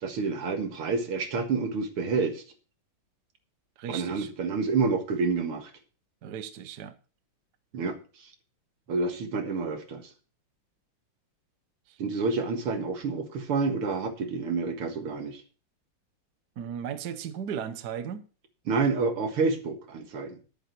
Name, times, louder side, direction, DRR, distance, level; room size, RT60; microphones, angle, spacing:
voice 1, 0.0-2.4 3.9-5.7 7.7-8.0 8.9-10.1 12.0-15.4 18.7-20.4, right 4 dB, 80° right, 2.6 m, -28 dB
voice 2, 3.8-4.3 6.2-6.9 11.9-12.0 16.6-18.2, right 8 dB, 55° right, 1.4 m, -36 dB
11.0 x 9.7 x 4.6 m
omnidirectional pair, 2.4 m